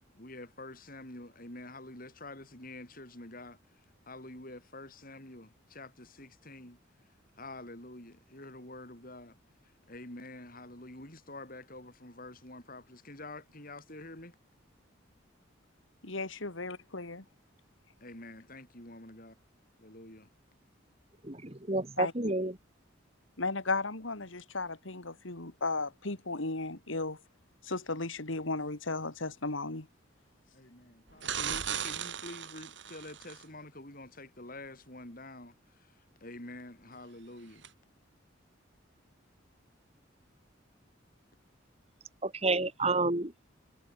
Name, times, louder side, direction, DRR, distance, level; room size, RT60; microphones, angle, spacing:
voice 1, 0.1-3.6 4.1-6.8 7.4-9.4 9.9-14.4 18.0-19.4 19.8-20.3 30.5-35.5 36.2-37.7, left 2 dB, 45° left, 8.0 m, -47 dB
voice 2, 16.0-17.2 22.0-22.1 23.4-27.2 27.6-29.9, left 3 dB, 80° left, 2.7 m, -35 dB
voice 3, 21.2-22.6 42.2-43.5, right 2 dB, 30° right, 2.8 m, -30 dB
sound 1, 31.2-33.4 37.6-37.7, right 8 dB, 65° right, 5.0 m, -37 dB
head